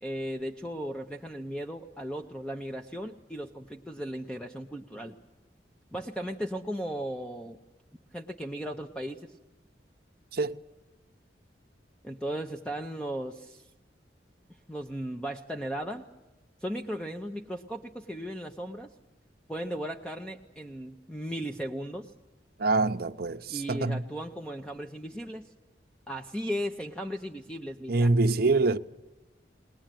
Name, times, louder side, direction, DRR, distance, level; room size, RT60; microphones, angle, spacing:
voice 1, 0.0-5.1 5.9-7.6 8.1-9.2 12.0-13.7 14.7-16.0 16.6-18.9 19.5-22.1 23.5-25.5 26.1-28.1, equal, 5° left, 0.8 m, -36 dB
voice 2, 22.6-24.0 27.9-28.8, right 3 dB, 55° right, 0.7 m, -25 dB
21.5 x 19.5 x 9.1 m
head